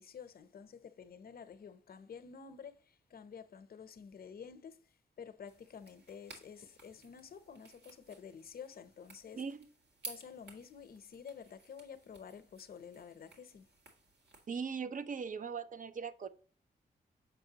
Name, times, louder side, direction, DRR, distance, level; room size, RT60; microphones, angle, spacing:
voice 1, 0.0-4.8 5.2-9.4 10.0-13.7, left 7 dB, 60° left, 0.7 m, -50 dB
sound 1, 5.5-14.5, right 3 dB, 70° right, 2.0 m, -55 dB
voice 2, 9.3-9.7 14.5-16.3, right 6 dB, 50° right, 0.7 m, -40 dB
7.5 x 5.2 x 2.8 m
supercardioid pair, 50°, 17 cm